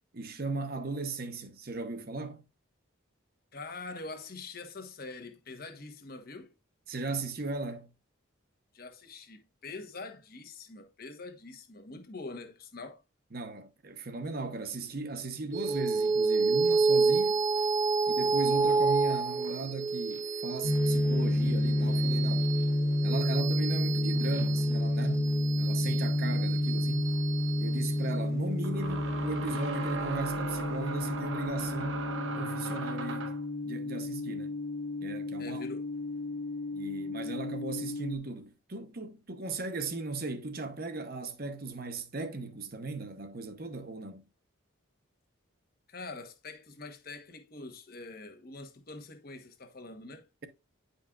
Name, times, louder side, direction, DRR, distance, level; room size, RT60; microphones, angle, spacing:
voice 1, 0.1-2.4 6.9-7.9 13.3-17.4 18.1-22.5 23.0-27.1 27.6-32.0 32.4-33.3 33.6-34.5 35.0-35.6 36.7-44.2, right 3 dB, 45° right, 0.9 m, -37 dB
voice 2, 3.5-6.5 8.7-13.0 35.4-35.9 45.9-50.3, left 3 dB, 45° left, 1.2 m, -44 dB
sound 1, 15.5-30.3, right 4 dB, 15° right, 1.1 m, -30 dB
sound 2, 20.6-38.2, left 1 dB, 70° left, 1.5 m, -30 dB
sound 3, 26.7-26.8 28.6-33.5, right 4 dB, 65° right, 1.0 m, -38 dB
10.0 x 5.3 x 2.4 m
head